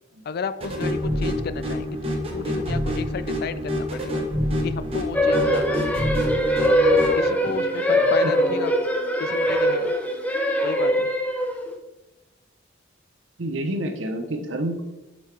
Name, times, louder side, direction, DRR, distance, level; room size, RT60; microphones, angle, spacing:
voice 1, 0.3-4.3 4.6-5.9 6.7-6.8 7.2-8.8 9.2-9.9 10.6-11.1, left 5 dB, 50° left, 13 dB, 0.3 m, -33 dB
sound 1, 0.6-7.2, equal, 30° right, 1.2 m, -27 dB
sound 2, 5.1-11.7, equal, 10° left, 0.6 m, -22 dB
voice 2, 8.0-8.3 13.4-14.8, right 1 dB, 75° right, 6 dB, 0.8 m, -29 dB
7.4 x 5.5 x 3.3 m, 1.1 s
head